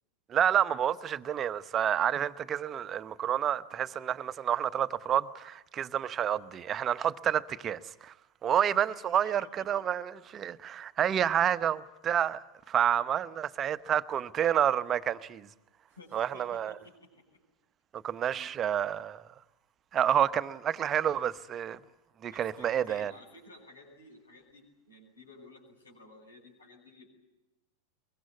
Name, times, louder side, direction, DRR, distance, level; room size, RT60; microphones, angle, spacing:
voice 1, 0.3-8.1 8.4-15.5 16.1-16.8 17.9-19.2 19.9-21.8 22.2-23.1, right 9 dB, 25° right, 0.9 m, -29 dB
voice 2, 9.0-9.8 15.9-17.4 18.3-18.5 22.3-27.1, left 2 dB, 75° left, 7.3 m, -54 dB
23.5 x 23.0 x 9.5 m
figure-of-eight pair, 90°, 0 cm